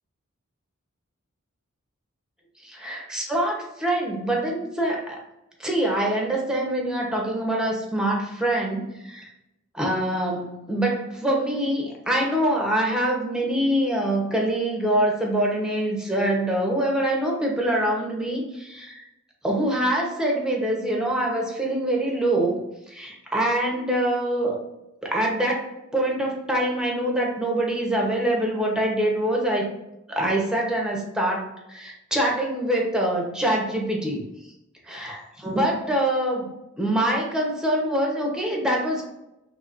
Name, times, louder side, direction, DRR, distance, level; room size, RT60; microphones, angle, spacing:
voice 1, 2.6-5.2 5.6-9.2 9.7-19.0 19.4-22.6 22.9-24.6 25.0-29.7 30.1-34.2 34.8-36.5 36.8-39.0, right 1 dB, 5° right, -1 dB, 1.0 m, -24 dB
6.0 x 3.3 x 2.6 m, 0.92 s
head